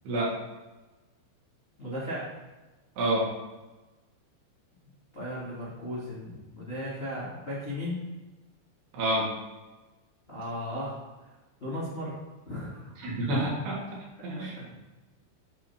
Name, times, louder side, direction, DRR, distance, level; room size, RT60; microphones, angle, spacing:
voice 1, 1.8-2.3 5.1-8.0 10.3-11.0 11.6-12.2 12.4-13.0 14.3-14.4, left 1 dB, 25° left, -7 dB, 1.2 m, -36 dB
voice 2, 3.0-3.3 8.9-9.3 13.0-13.8 14.2-14.7, right 1 dB, 65° right, -5 dB, 3.4 m, -28 dB
8.5 x 3.7 x 5.6 m, 1.1 s
omnidirectional pair, 5.4 m